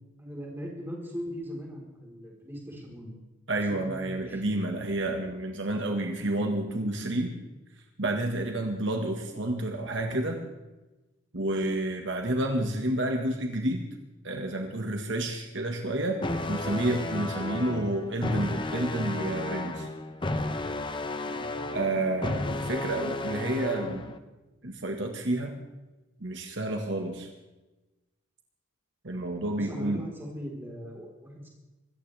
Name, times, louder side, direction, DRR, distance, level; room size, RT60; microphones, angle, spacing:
voice 1, 0.2-3.2 3.7-4.4 21.2-21.5 29.5-31.5, equal, 10° right, -2 dB, 4.1 m, -40 dB
voice 2, 3.5-7.4 8.0-10.4 11.3-13.8 14.2-16.2 16.5-19.9 21.7-24.1 24.6-25.5 26.2-27.3 29.0-30.0, right 1 dB, 60° right, 3 dB, 1.6 m, -30 dB
sound 1, 16.2-24.2, left 2 dB, 25° left, 0.8 m, -33 dB
24.5 x 14.5 x 3.4 m, 1.1 s
head